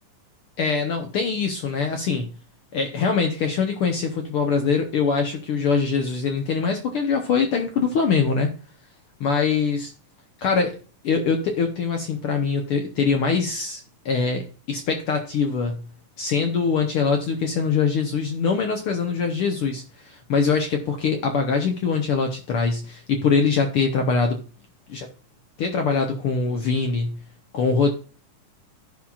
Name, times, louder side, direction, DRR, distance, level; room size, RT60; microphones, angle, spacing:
voice 1, 0.6-2.3 2.7-8.5 9.2-9.9 10.4-10.7 11.0-15.8 16.2-24.4 24.9-25.1 25.6-27.2 27.5-27.9, left 5 dB, 70° left, 4 dB, 1.3 m, -23 dB
15.0 x 5.6 x 2.4 m, 0.37 s
omnidirectional pair, 3.8 m